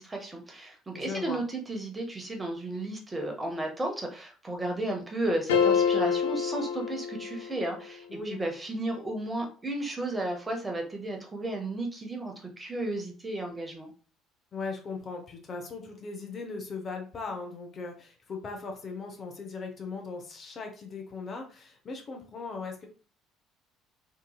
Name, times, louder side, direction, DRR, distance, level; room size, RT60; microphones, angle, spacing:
voice 1, 0.0-13.9, right 2 dB, 20° right, 2 dB, 0.9 m, -34 dB
voice 2, 0.9-1.4 8.1-8.4 14.5-22.9, left 4 dB, 40° left, 3 dB, 0.6 m, -38 dB
sound 1, 5.5-7.8, left 7 dB, 75° left, 0.4 m, -26 dB
2.8 x 2.6 x 2.3 m, 0.38 s
figure-of-eight pair, 55°, 0 cm